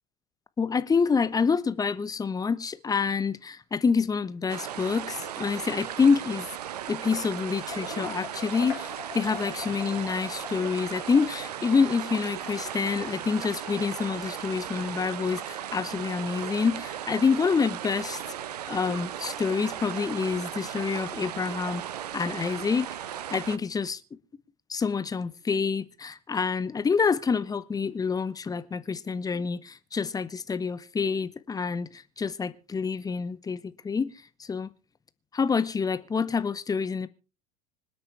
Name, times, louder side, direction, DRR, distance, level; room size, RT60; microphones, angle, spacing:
voice 1, 0.6-6.5 6.9-18.2 18.7-21.8 22.1-22.9 23.3-24.0 24.7-34.1 34.4-34.7 35.3-37.1, left 5 dB, 15° left, 1.0 m, -27 dB
sound 1, 4.5-23.6, right 10 dB, 70° right, 1.0 m, -36 dB
sound 2, 7.4-15.1, left 6 dB, 70° left, 5.1 m, -44 dB
26.0 x 8.7 x 3.3 m
figure-of-eight pair, 75°, 21 cm